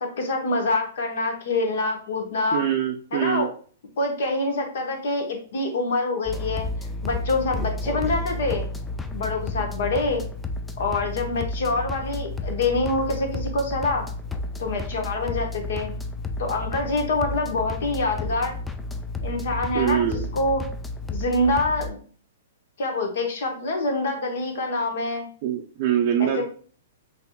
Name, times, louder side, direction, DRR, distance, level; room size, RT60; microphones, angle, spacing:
voice 1, 0.0-2.6 3.1-3.5 4.0-6.7 7.0-8.7 9.1-10.3 10.8-14.1 14.6-15.9 16.4-18.5 19.2-20.1 20.3-20.6 21.1-22.0 22.8-25.3 26.2-26.4, left 2 dB, 60° left, 3 dB, 1.2 m, -25 dB
voice 2, 2.5-3.5 19.7-20.3 25.4-26.4, right 10 dB, 45° right, -1 dB, 0.6 m, -24 dB
sound 1, 6.3-21.9, left 2 dB, 10° left, 0.4 m, -32 dB
5.9 x 2.8 x 2.3 m, 0.43 s
figure-of-eight pair, 110°, 0 cm